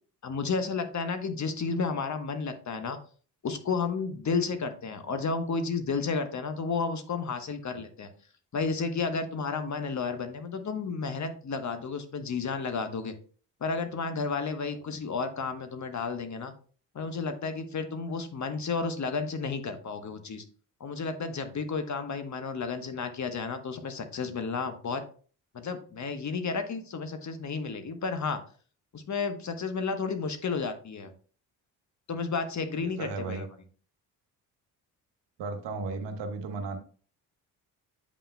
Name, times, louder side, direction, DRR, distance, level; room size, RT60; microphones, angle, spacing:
voice 1, 0.2-3.0 3.4-8.1 8.5-13.1 13.6-16.5 16.9-20.4 20.8-25.0 25.5-28.4 28.9-31.1 32.1-33.5, left 4 dB, 40° left, 8 dB, 1.1 m, -32 dB
voice 2, 32.8-33.5 35.4-36.8, right 4 dB, 65° right, 6 dB, 1.2 m, -35 dB
8.5 x 5.6 x 2.2 m, 0.41 s
hypercardioid pair, 50°, 46 cm